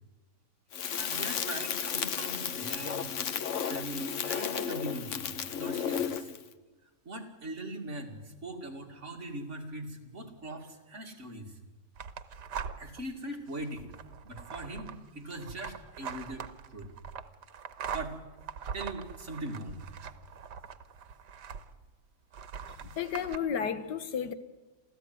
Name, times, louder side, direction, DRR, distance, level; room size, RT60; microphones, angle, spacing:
Crackle, 0.7-6.4, left 7 dB, 50° left, 1.2 m, -33 dB
voice 1, 0.9-3.1 3.6-6.3 7.0-11.5 12.8-13.8 14.2-16.4 16.7-16.9 17.9-18.2 18.7-19.8, right 1 dB, 45° right, 2.7 m, -41 dB
sound 1, 12.0-13.0 13.5-21.9 22.3-23.4, right 7 dB, 85° right, 1.7 m, -42 dB
voice 2, 22.7-24.3, left 7 dB, 80° left, 1.8 m, -33 dB
28.0 x 14.5 x 9.5 m
omnidirectional pair, 1.8 m